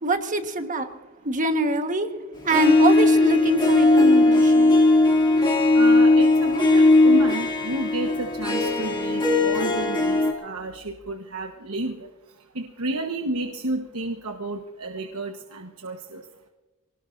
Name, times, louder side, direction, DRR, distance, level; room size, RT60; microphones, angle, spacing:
voice 1, 0.0-0.9 1.2-2.1 2.4-4.8, right 2 dB, 35° right, 1.4 m, -24 dB
Harp, 2.5-10.3, left 2 dB, 20° left, 2.5 m, -18 dB
voice 2, 5.7-12.1 12.5-16.2, right 2 dB, 80° right, 1.3 m, -31 dB
25.5 x 19.0 x 2.6 m
head